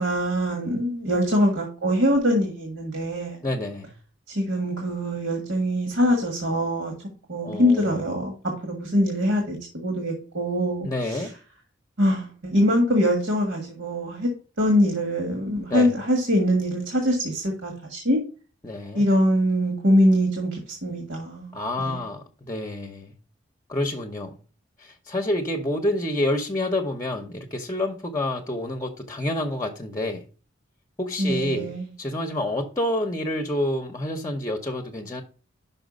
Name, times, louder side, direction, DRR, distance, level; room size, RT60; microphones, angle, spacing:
voice 1, 0.0-3.4 4.3-6.9 7.3-8.3 8.6-11.3 12.0-14.3 14.6-18.2 18.9-21.5 21.8-22.0 31.2-31.9, equal, 80° right, 1.6 m, -23 dB
voice 2, 3.4-3.9 7.4-8.0 10.8-11.3 15.7-15.9 18.6-19.1 21.5-23.1 23.7-24.4 24.8-30.2 31.0-35.2, left 1 dB, 20° left, 0.8 m, -28 dB
5.7 x 5.1 x 5.2 m
head